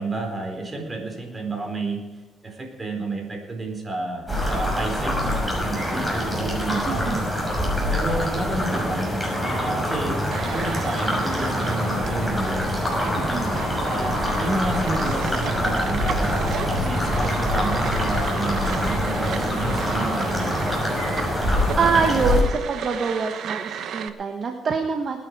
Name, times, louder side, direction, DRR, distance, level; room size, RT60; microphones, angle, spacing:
voice 1, 0.0-2.0 2.4-7.3 7.9-9.1 9.4-12.6 13.0-13.4 13.8-20.6, right 2 dB, 30° right, 2 dB, 4.4 m, -30 dB
sound 1, 4.3-22.4, left 1 dB, 5° right, 6.2 m, -25 dB
voice 2, 6.8-7.3 13.3-13.5 21.8-25.2, right 5 dB, 50° right, 4 dB, 1.4 m, -24 dB
sound 2, 10.3-24.1, right 8 dB, 70° right, 1.1 m, -36 dB
21.5 x 10.0 x 4.8 m, 1.2 s
cardioid pair, 90°, 0 cm